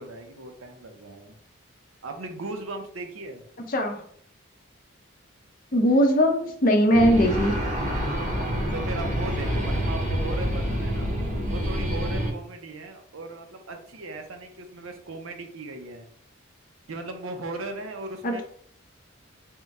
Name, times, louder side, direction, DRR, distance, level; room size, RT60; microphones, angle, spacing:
voice 1, 0.0-1.3 2.0-3.4 8.4-8.5 8.7-11.1 11.5-16.1 16.9-18.4, right 2 dB, 70° right, 5 dB, 0.7 m, -37 dB
voice 2, 3.7-4.0 5.7-7.6 18.2-18.4, equal, 40° left, 3 dB, 0.6 m, -20 dB
sound 1, 6.9-12.3, equal, 35° right, 0.8 m, -27 dB
3.6 x 2.2 x 4.1 m, 0.62 s
head